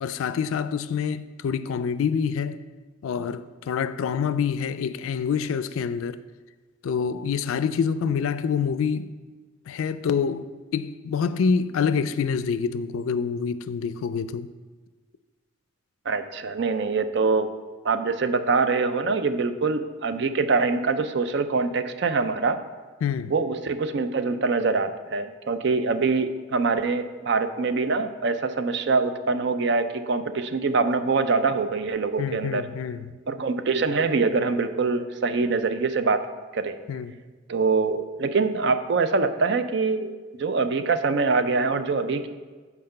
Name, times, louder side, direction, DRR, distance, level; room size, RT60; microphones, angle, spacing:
voice 1, 0.0-2.6 3.0-6.2 6.8-9.2 9.7-14.5 23.0-23.3 32.2-33.1 36.9-37.1, left 6 dB, 90° left, 0.3 m, -26 dB
voice 2, 16.1-17.5 17.8-22.6 23.3-32.7 33.3-36.2 36.5-36.8 37.5-40.1 40.4-42.3, right 4 dB, 55° right, 0.4 m, -24 dB
5.8 x 4.6 x 6.5 m
head